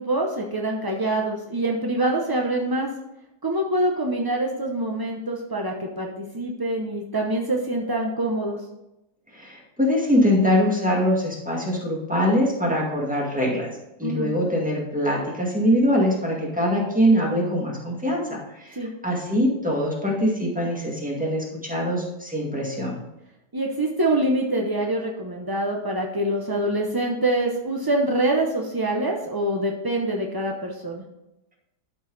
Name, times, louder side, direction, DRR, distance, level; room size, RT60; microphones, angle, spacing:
voice 1, 0.0-2.9 3.4-8.6 14.0-14.3 18.7-18.9 23.5-31.0, right 1 dB, 35° right, 0 dB, 0.3 m, -25 dB
voice 2, 9.3-13.7 14.0-18.8 19.0-23.0, equal, 5° right, -3 dB, 2.0 m, -23 dB
12.5 x 4.7 x 4.1 m, 0.93 s
omnidirectional pair, 1.8 m